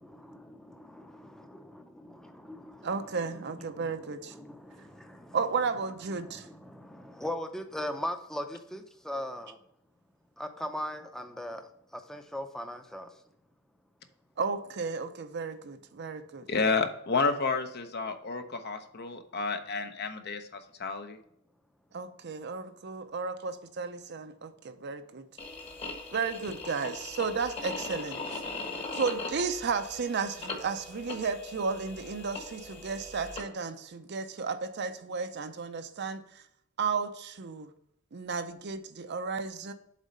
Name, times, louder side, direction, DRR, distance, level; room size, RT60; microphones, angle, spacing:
voice 1, 0.0-5.4 6.1-9.6 10.4-13.2, left 1 dB, 5° left, 0.6 m, -40 dB
voice 2, 2.8-4.3 5.3-6.5 14.4-16.5 21.9-25.2 26.1-28.4 28.9-36.2 36.8-37.7 38.1-39.7, right 5 dB, 55° right, 0.6 m, -33 dB
voice 3, 16.5-21.2, left 4 dB, 55° left, 0.8 m, -30 dB
sound 1, 25.4-33.4, left 3 dB, 30° left, 1.2 m, -40 dB
7.3 x 4.1 x 5.4 m
head